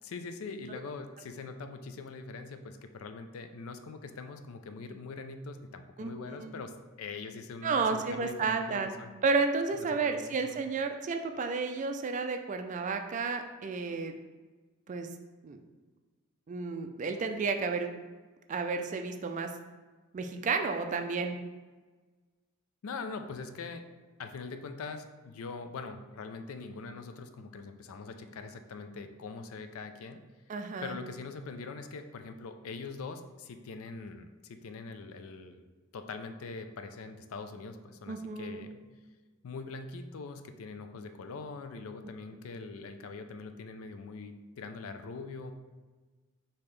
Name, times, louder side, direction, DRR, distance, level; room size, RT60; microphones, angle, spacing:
voice 1, 0.0-6.7 7.0-9.1 9.8-10.6 22.8-23.8 24.2-30.2 30.8-35.7 35.9-38.8 39.4-45.5, left 4 dB, 75° left, 8 dB, 0.4 m, -43 dB
voice 2, 6.0-6.5 7.6-8.9 9.2-14.1 14.9-15.1 15.4-15.6 16.5-17.9 18.5-19.5 20.1-21.4 30.5-31.0 38.1-38.7, right 4 dB, 35° right, 6 dB, 0.3 m, -32 dB
5.3 x 2.9 x 3.2 m, 1.3 s
head